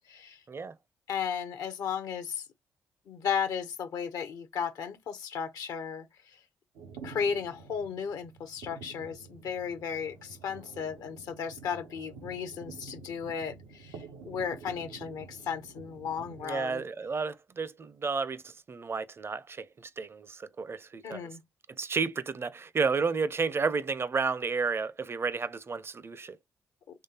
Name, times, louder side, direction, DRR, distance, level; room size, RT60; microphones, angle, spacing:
voice 1, 0.1-0.4 1.1-2.4 3.1-6.1 7.0-16.8 21.0-21.4, left 7 dB, 70° left, 0.5 m, -35 dB
sound 1, 6.7-16.5, right 5 dB, 85° right, 0.6 m, -49 dB
voice 2, 16.4-21.3 21.8-26.4, right 5 dB, 40° right, 0.5 m, -32 dB
3.6 x 3.2 x 2.8 m
hypercardioid pair, 50°, 7 cm